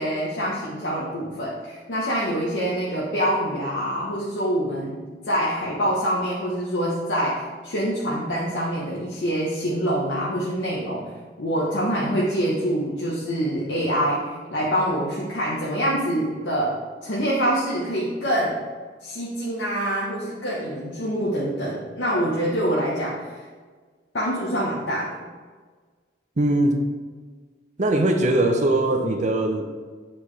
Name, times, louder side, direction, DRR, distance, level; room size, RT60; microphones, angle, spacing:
voice 1, 0.0-18.6 19.0-23.4 24.1-25.2, equal, 75° left, -5 dB, 1.0 m, -25 dB
voice 2, 26.4-26.8 27.8-29.8, right 1 dB, 40° right, 4 dB, 0.7 m, -21 dB
7.6 x 4.3 x 3.2 m, 1.5 s
head